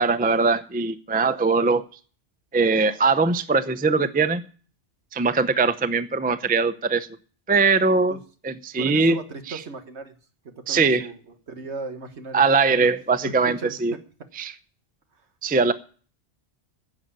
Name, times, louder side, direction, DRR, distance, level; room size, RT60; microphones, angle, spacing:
voice 1, 0.0-1.8 2.5-4.4 5.1-7.1 7.5-8.2 8.4-9.2 9.5-9.6 10.7-11.1 12.3-13.9 14.4-14.5 15.4-15.7, right 4 dB, 10° right, 13 dB, 0.5 m, -21 dB
voice 2, 8.8-10.2 10.4-11.1 11.5-12.4 12.8-12.9 13.2-14.0, right 4 dB, 65° right, 8 dB, 1.7 m, -37 dB
10.5 x 7.9 x 8.7 m, 0.41 s
omnidirectional pair, 1.2 m